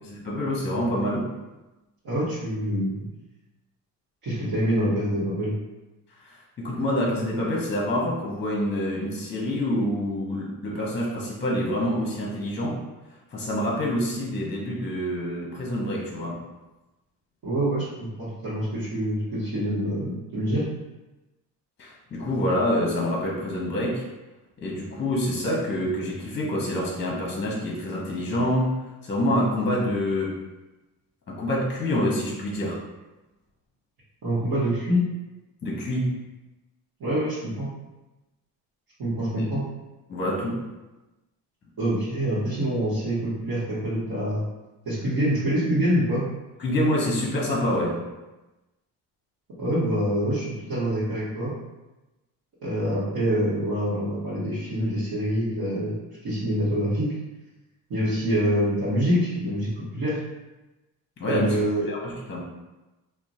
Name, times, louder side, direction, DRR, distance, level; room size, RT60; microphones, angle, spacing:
voice 1, 0.0-1.3 6.3-12.8 13.3-16.4 21.8-24.0 24.6-30.4 31.3-32.8 35.6-36.1 39.3-39.4 40.1-40.7 46.6-48.0 61.2-62.4, left 1 dB, 25° left, -3 dB, 0.8 m, -27 dB
voice 2, 2.0-3.1 4.2-5.5 17.4-20.7 34.2-35.0 37.0-37.7 39.0-39.6 41.8-44.4 44.8-46.2 49.6-51.5 52.6-57.1 57.9-60.2 61.3-61.9, equal, 60° right, -10 dB, 1.1 m, -26 dB
2.8 x 2.1 x 2.6 m, 1.1 s
supercardioid pair, 70°, 43 cm